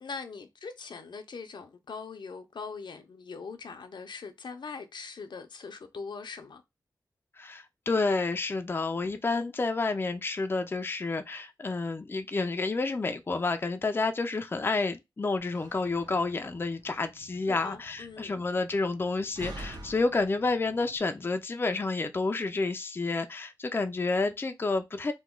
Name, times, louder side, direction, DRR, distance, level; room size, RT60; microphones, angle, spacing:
voice 1, 0.0-6.6 17.5-18.4, left 5 dB, 75° left, 0.5 m, -41 dB
voice 2, 7.4-25.1, left 3 dB, 30° left, 0.3 m, -30 dB
Slam, 15.4-21.0, right 2 dB, 60° right, 0.7 m, -48 dB
2.9 x 2.2 x 3.6 m
wide cardioid pair, 105°, 8 cm